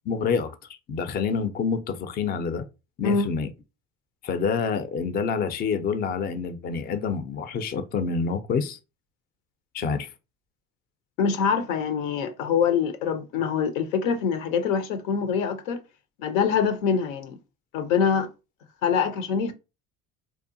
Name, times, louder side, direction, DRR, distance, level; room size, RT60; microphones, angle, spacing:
voice 1, 0.1-0.6 0.9-2.6 3.0-3.5 4.2-8.8 9.7-10.1, left 5 dB, 25° left, 0.3 m, -27 dB
voice 2, 11.2-15.8 16.2-17.4 17.7-18.3 18.8-19.5, left 6 dB, 85° left, 0.5 m, -24 dB
2.7 x 2.1 x 2.5 m
hypercardioid pair, 70°, 39 cm